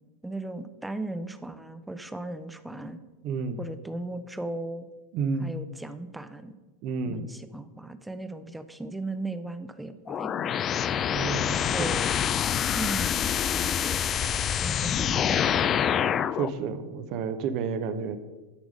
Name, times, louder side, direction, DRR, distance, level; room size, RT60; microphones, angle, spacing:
voice 1, 0.2-3.0 3.6-4.9 5.4-6.5 7.0-10.6 11.5-12.1 12.7-14.0 14.6-15.8, right 2 dB, 5° right, 11 dB, 0.7 m, -37 dB
voice 2, 3.2-3.6 5.1-5.5 6.8-7.2 11.1-11.5 11.8-11.9 16.3-18.2, right 5 dB, 50° right, 11 dB, 0.9 m, -30 dB
sound 1, 10.1-16.5, left 9 dB, 35° left, 0.4 m, -26 dB
12.0 x 4.8 x 5.2 m, 1.2 s
hypercardioid pair, 95°, 0 cm